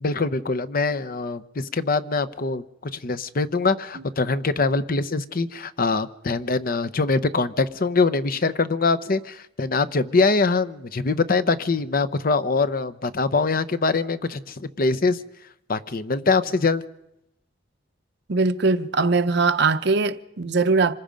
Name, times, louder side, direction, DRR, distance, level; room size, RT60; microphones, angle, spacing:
voice 1, 0.0-2.6 2.9-15.2 15.7-16.8, left 3 dB, 50° left, 0.8 m, -23 dB
voice 2, 18.3-20.9, right 3 dB, 65° right, 0.8 m, -21 dB
26.5 x 20.5 x 5.2 m
head